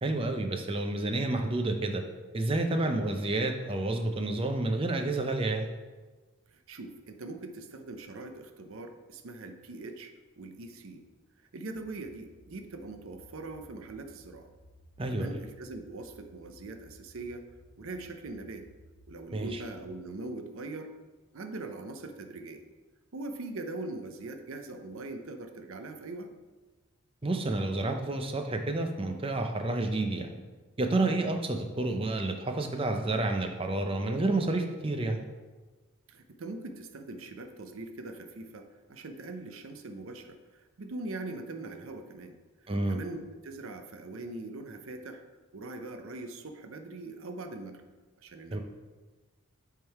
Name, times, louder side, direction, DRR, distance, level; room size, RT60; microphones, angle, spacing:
voice 1, 0.0-2.0 2.3-5.7 15.0-15.4 19.3-19.6 27.2-30.4 30.8-35.2 42.7-43.0 48.5-48.6, right 2 dB, 25° right, 5 dB, 0.5 m, -29 dB
voice 2, 6.5-11.0 11.5-14.5 15.1-17.4 17.8-18.7 19.1-20.9 21.3-22.6 23.1-26.3 30.9-31.1 36.1-42.3 42.6-45.2 45.5-47.8 48.2-48.6, right 2 dB, 70° right, 6 dB, 0.6 m, -42 dB
sound 1, 11.7-19.7, equal, 35° left, 2.0 m, -58 dB
8.5 x 3.7 x 4.6 m, 1.3 s
head